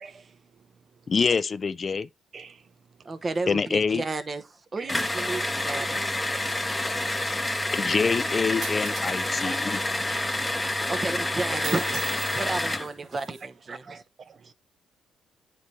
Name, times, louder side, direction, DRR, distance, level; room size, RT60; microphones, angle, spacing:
voice 1, 0.0-0.4 2.3-2.6 4.8-5.0 5.4-5.5 6.3-6.6 9.4-9.7 10.1-10.3 11.5-11.7 12.3-12.5 13.7-14.5, right 5 dB, 50° right, 0.5 m, -43 dB
voice 2, 1.1-2.1 3.5-4.0 7.7-9.8, left 5 dB, 40° left, 0.3 m, -25 dB
voice 3, 3.0-6.0 10.9-12.0 12.4-14.0, right 3 dB, 30° right, 0.9 m, -32 dB
sound 1, 4.9-12.9, left 1 dB, 10° left, 0.8 m, -28 dB
sound 2, 8.6-9.2 9.9-10.0 11.6-13.4, right 5 dB, 70° right, 2.0 m, -39 dB
9.0 x 3.2 x 4.2 m
cardioid pair, 90°, 0 cm